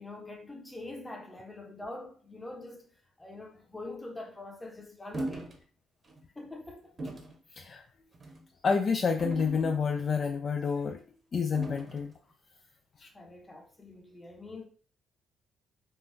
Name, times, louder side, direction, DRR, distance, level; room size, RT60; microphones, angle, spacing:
voice 1, 0.0-2.9 3.2-5.5 6.4-6.9 13.1-14.7, left 2 dB, 15° left, 0.8 m, -44 dB
sound 1, 5.1-5.6 6.0-6.2 7.0-7.4 8.1-8.4 9.2-10.1 11.5-12.1, right 2 dB, 35° right, 0.8 m, -39 dB
voice 2, 8.6-11.0 11.3-12.1 13.0-13.1, left 5 dB, 50° left, 0.3 m, -29 dB
3.6 x 2.3 x 2.6 m
cardioid pair, 90°, 0 cm